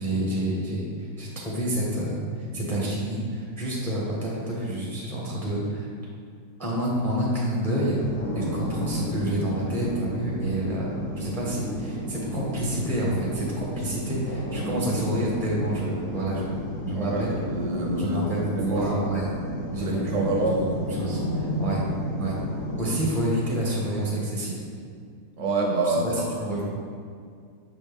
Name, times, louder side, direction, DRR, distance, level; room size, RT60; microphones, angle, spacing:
voice 1, 0.0-5.9 6.6-8.0 8.3-17.3 18.0-19.3 19.7-21.8 22.2-22.4 22.8-24.6 25.8-26.6, right 1 dB, ahead, -5 dB, 0.9 m, -29 dB
sound 1, 8.0-23.0, equal, 65° left, 1.8 m, -32 dB
voice 2, 16.9-18.8 19.8-20.6 25.4-26.1 26.4-26.5, right 2 dB, 55° right, -2 dB, 1.2 m, -27 dB
6.6 x 4.3 x 3.5 m, 2.2 s
omnidirectional pair, 1.8 m